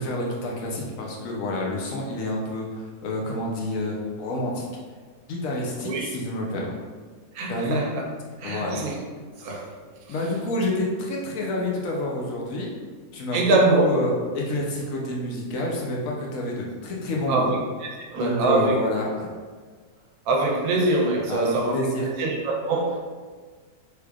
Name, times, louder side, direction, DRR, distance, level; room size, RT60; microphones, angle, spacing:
voice 1, 0.0-4.7 5.3-6.7 7.5-7.8 8.4-8.8 10.1-12.7 13.1-17.5 18.2-19.3 21.3-22.1, left 1 dB, 70° left, -2 dB, 1.0 m, -28 dB
voice 2, 7.3-8.0 8.4-9.0 9.4-9.7 13.3-13.9 17.3-18.8 20.3-21.8 22.2-23.0, right 2 dB, 85° right, 0 dB, 1.1 m, -23 dB
3.4 x 3.2 x 2.3 m, 1.5 s
omnidirectional pair, 1.5 m